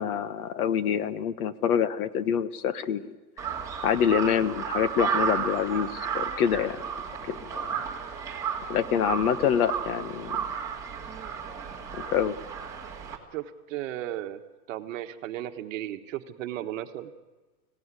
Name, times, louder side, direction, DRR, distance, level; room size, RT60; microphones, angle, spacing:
voice 1, 0.0-3.1 3.8-6.8 7.3-7.8 8.7-10.4 12.0-12.4, left 8 dB, 60° left, 14 dB, 1.2 m, -26 dB
Crow, 3.4-13.2, right 7 dB, 5° right, 2.2 m, -33 dB
voice 2, 13.3-14.4 14.7-17.1, right 13 dB, 50° right, 7 dB, 1.5 m, -35 dB
25.0 x 17.5 x 9.7 m, 1.2 s
supercardioid pair, 170°, 50 cm